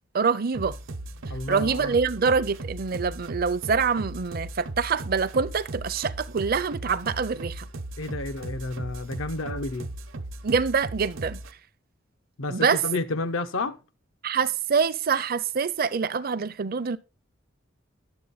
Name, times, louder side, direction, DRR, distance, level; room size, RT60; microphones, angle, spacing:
voice 1, 0.1-0.8 1.5-7.7 10.4-11.4 12.5-12.8 14.2-17.0, right 5 dB, 50° right, 0.5 m, -25 dB
sound 1, 0.5-11.5, right 2 dB, 80° right, 0.9 m, -37 dB
voice 2, 1.3-2.0 8.0-9.9 12.4-13.8, left 2 dB, 80° left, 0.7 m, -31 dB
10.5 x 7.5 x 4.0 m
head